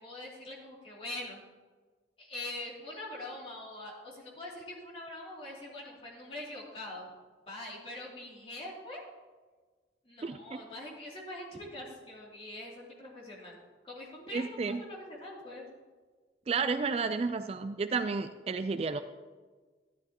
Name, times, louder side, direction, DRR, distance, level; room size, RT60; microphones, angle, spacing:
voice 1, 0.0-1.4 2.2-7.1 7.5-9.0 10.0-13.6 13.8-15.6, left 1 dB, 30° left, -5 dB, 2.8 m, -43 dB
voice 2, 14.3-14.8 16.5-19.0, right 4 dB, 35° right, 10 dB, 0.3 m, -31 dB
13.0 x 11.5 x 2.9 m, 1.4 s
head